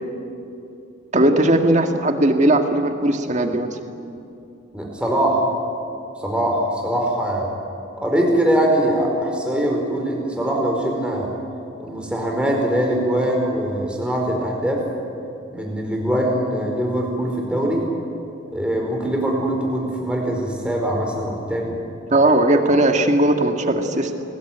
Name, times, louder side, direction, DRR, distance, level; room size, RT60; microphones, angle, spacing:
voice 1, 1.1-3.7 22.1-24.1, right 1 dB, 35° right, 5 dB, 1.9 m, -18 dB
voice 2, 4.7-5.4 6.2-7.5 8.0-11.3 11.8-14.8 15.5-17.8 18.5-21.8, right 1 dB, 5° right, 0 dB, 4.7 m, -22 dB
28.0 x 20.0 x 9.3 m, 2.7 s
head